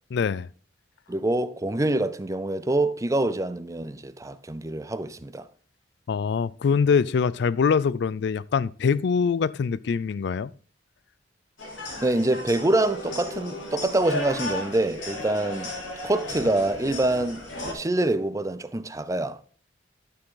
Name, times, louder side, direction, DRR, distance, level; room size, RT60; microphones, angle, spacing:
voice 1, 0.1-0.5 6.1-10.5, left 6 dB, 60° left, 0.3 m, -24 dB
voice 2, 1.1-5.5 12.0-15.7 16.0-19.4, right 2 dB, 15° right, 0.5 m, -25 dB
sound 1, 11.6-17.7, left 1 dB, 80° left, 3.3 m, -34 dB
11.5 x 6.4 x 3.8 m
head